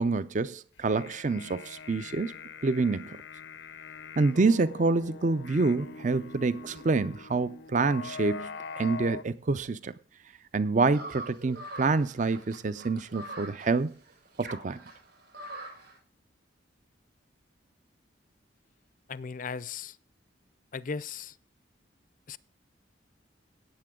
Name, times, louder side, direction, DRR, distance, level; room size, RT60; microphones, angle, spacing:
voice 1, 0.0-2.3 2.6-3.2 4.2-9.9 10.5-13.9 14.4-14.8, right 3 dB, 40° right, 0.5 m, -27 dB
sound 1, 0.8-9.2, left 5 dB, 85° left, 0.8 m, -43 dB
sound 2, 10.9-15.9, right 2 dB, 60° right, 6.4 m, -43 dB
voice 2, 19.1-20.0 20.7-21.3 22.3-22.4, left 5 dB, 45° left, 0.5 m, -37 dB
17.5 x 7.6 x 3.7 m
head